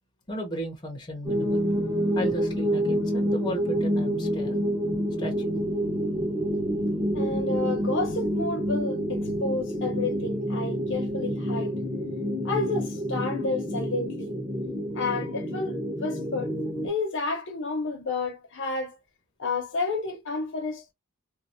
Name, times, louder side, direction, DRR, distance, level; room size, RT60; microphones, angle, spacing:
voice 1, 0.3-1.7 2.1-4.6 5.2-5.5, equal, 20° left, 0.8 m, -35 dB
sound 1, 1.3-16.9, equal, 20° right, 1.2 m, -28 dB
voice 2, 7.1-11.8 12.4-14.4 14.9-19.0 19.4-20.9, left 3 dB, 55° left, 0.8 m, -31 dB
3.1 x 2.2 x 2.6 m
head